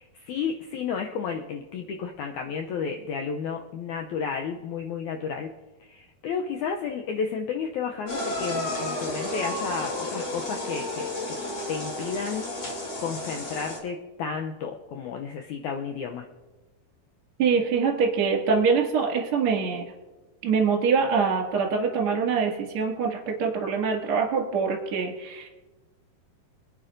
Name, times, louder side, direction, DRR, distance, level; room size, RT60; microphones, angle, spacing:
voice 1, 0.0-5.5 5.8-11.4 11.7-12.7 13.0-16.3, left 6 dB, 80° left, 3 dB, 1.7 m, -32 dB
sound 1, 8.1-13.8, left 1 dB, 45° left, 3.1 m, -32 dB
voice 2, 17.4-19.9 20.4-25.5, right 5 dB, 40° right, -1 dB, 2.8 m, -24 dB
25.5 x 9.5 x 2.6 m, 1.2 s
omnidirectional pair, 4.1 m